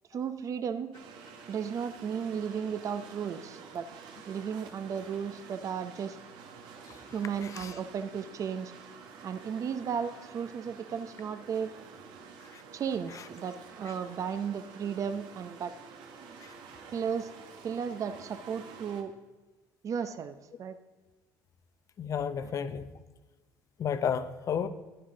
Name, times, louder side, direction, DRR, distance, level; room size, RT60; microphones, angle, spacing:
voice 1, 0.1-0.9 1.5-3.9 4.3-6.2 7.1-8.7 9.2-11.7 12.7-15.7 16.2-16.4 16.9-17.3 17.6-19.1 19.8-20.8 22.4-22.5, right 7 dB, 45° right, 11 dB, 0.7 m, -34 dB
sound 1, 0.9-19.0, right 5 dB, 75° right, 1.4 m, -49 dB
voice 2, 22.0-22.9 23.8-24.7, left 7 dB, 45° left, 12 dB, 0.7 m, -31 dB
10.5 x 10.0 x 3.8 m, 1.2 s
cardioid pair, 105°, 8 cm